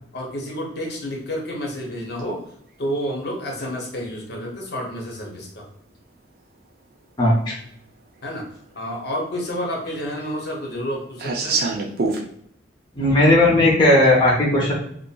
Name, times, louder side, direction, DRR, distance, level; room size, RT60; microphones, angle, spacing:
voice 1, 0.1-2.4 2.8-5.6 8.2-8.4 8.7-11.6, equal, 55° left, -1 dB, 0.8 m, -29 dB
sound 1, 5.6-5.7 7.0-7.1 7.6-7.7 8.0-8.7 9.0-12.2, right 3 dB, 50° right, 0.4 m, -26 dB
voice 2, 7.2-7.5 12.9-14.7, left 1 dB, 25° left, -5 dB, 0.6 m, -16 dB
2.7 x 2.4 x 2.3 m, 0.67 s
head